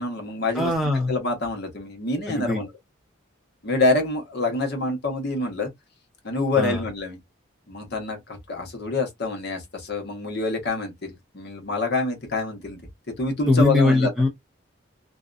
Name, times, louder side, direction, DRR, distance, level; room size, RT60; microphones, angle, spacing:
voice 1, 0.0-0.7 1.1-2.7 3.6-5.7 6.2-7.2 7.7-12.8 13.2-14.1, left 2 dB, 55° left, 1.0 m, -26 dB
voice 2, 0.5-1.2 2.3-2.6 6.5-6.8 13.5-14.3, left 2 dB, ahead, 0.7 m, -21 dB
2.6 x 2.2 x 2.4 m
head